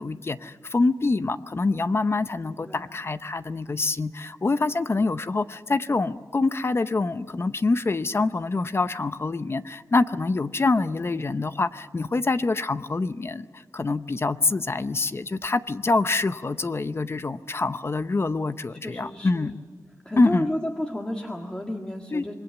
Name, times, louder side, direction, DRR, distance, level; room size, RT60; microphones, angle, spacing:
voice 1, 0.0-19.5 20.2-20.5 22.1-22.3, left 3 dB, 40° left, 13 dB, 0.7 m, -25 dB
voice 2, 18.7-19.5 20.0-22.3, left 1 dB, 15° left, 1 dB, 1.8 m, -31 dB
26.5 x 21.0 x 7.3 m, 1.4 s
wide cardioid pair, 100°, 7 cm